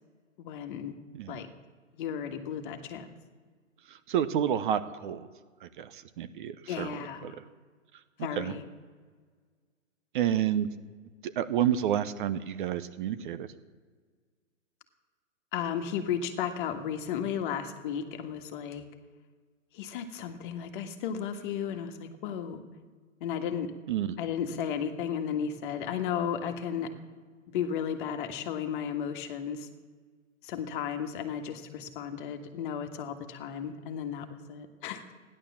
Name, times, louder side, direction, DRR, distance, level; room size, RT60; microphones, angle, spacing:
voice 1, 0.4-1.0 1.3-1.5 1.9-3.1 6.7-7.2 8.2-8.6 15.5-18.8 19.7-22.6 23.2-23.7 24.2-26.9 27.5-29.7 30.4-35.0, left 8 dB, 40° left, 7 dB, 1.6 m, -34 dB
voice 2, 3.9-5.3 5.6-7.4 8.3-8.6 10.1-10.7 11.2-13.5 23.9-24.2, right 10 dB, 40° right, 12 dB, 0.8 m, -30 dB
15.0 x 11.0 x 7.2 m, 1.5 s
hypercardioid pair, 135°, 39 cm